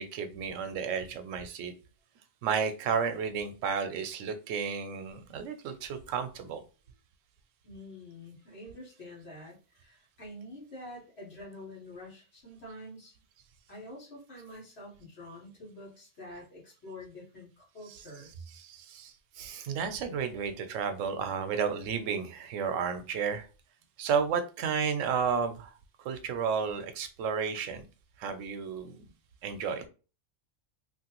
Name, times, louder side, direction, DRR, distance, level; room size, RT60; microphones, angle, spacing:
voice 1, 0.0-1.7 2.4-6.6 18.6-23.5 24.0-25.7 26.0-27.8 28.2-29.1 29.4-29.8, right 6 dB, 90° right, 8 dB, 0.9 m, -32 dB
voice 2, 7.6-13.1 13.7-18.5, left 1 dB, 60° left, -3 dB, 1.6 m, -47 dB
3.0 x 2.4 x 2.9 m, 0.34 s
omnidirectional pair, 1.3 m